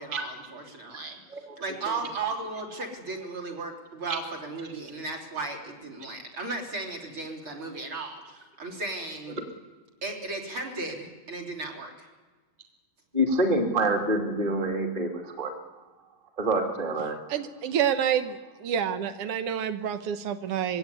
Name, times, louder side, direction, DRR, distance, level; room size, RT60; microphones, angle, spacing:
voice 1, 0.0-1.2 1.6-9.4 10.0-12.1, right 3 dB, 35° right, 0 dB, 3.8 m, -35 dB
voice 2, 13.1-15.5 16.4-17.1, right 1 dB, 15° right, 4 dB, 2.2 m, -26 dB
voice 3, 17.3-20.8, right 9 dB, 85° right, 9 dB, 1.3 m, -28 dB
21.5 x 17.0 x 9.8 m, 1.4 s
omnidirectional pair, 3.8 m